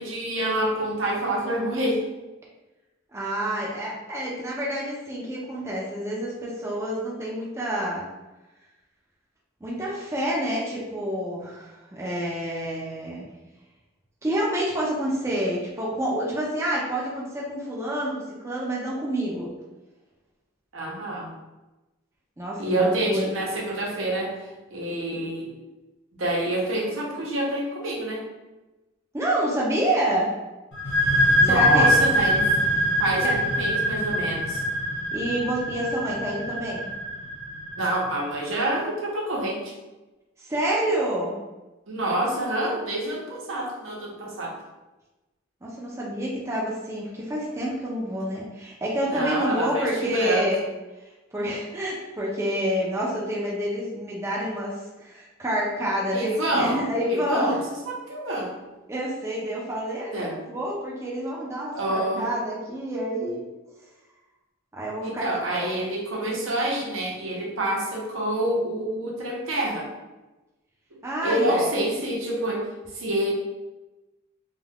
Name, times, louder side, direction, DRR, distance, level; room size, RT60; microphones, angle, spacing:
voice 1, 0.0-2.0 20.7-21.3 22.6-24.4 24.7-25.5 26.1-28.2 31.4-32.5 33.0-34.6 37.8-39.7 41.9-44.5 49.1-50.5 56.1-56.8 57.1-57.6 57.9-58.5 60.1-60.4 61.7-62.3 65.0-69.9 70.9-72.6 72.9-73.3, right 1 dB, 75° right, -2 dB, 0.7 m, -27 dB
voice 2, 3.1-8.0 9.6-13.2 14.2-19.5 22.4-23.3 29.1-30.3 31.4-32.0 33.2-33.3 35.1-36.8 40.4-41.4 45.6-50.7 51.3-57.6 58.9-63.4 64.7-65.7 71.0-71.7, right 1 dB, 15° right, -5 dB, 0.4 m, -28 dB
sound 1, 30.7-38.2, equal, 60° left, 0.9 m, -24 dB
2.3 x 2.3 x 3.4 m, 1.1 s
head